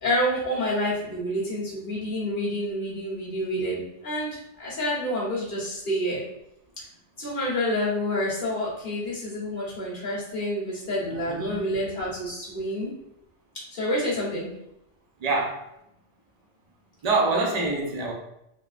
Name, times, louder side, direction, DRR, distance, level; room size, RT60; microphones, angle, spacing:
voice 1, 0.0-4.3 4.6-6.2 7.2-12.9 13.7-14.5, equal, 35° left, -7 dB, 1.2 m, -28 dB
voice 2, 11.1-11.6 15.2-15.6 17.0-18.1, right 3 dB, 50° right, -1 dB, 0.5 m, -25 dB
3.5 x 2.2 x 2.4 m, 0.81 s
omnidirectional pair, 1.3 m